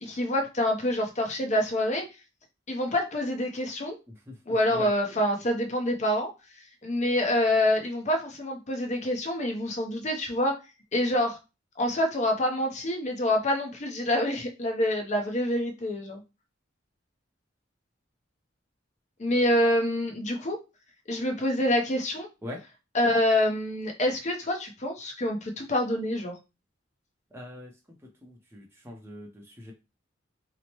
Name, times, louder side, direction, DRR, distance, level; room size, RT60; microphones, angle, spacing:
voice 1, 0.0-2.0 2.7-3.9 4.5-6.3 6.8-10.6 10.9-11.4 11.8-16.2 19.2-20.6 21.1-22.3 22.9-26.3, left 1 dB, 35° left, 2 dB, 0.6 m, -26 dB
voice 2, 4.1-4.4 4.7-4.9 22.4-22.6 27.3-27.7 28.2-29.7, left 1 dB, 10° right, -1 dB, 0.6 m, -42 dB
2.9 x 2.0 x 2.9 m, 0.27 s
head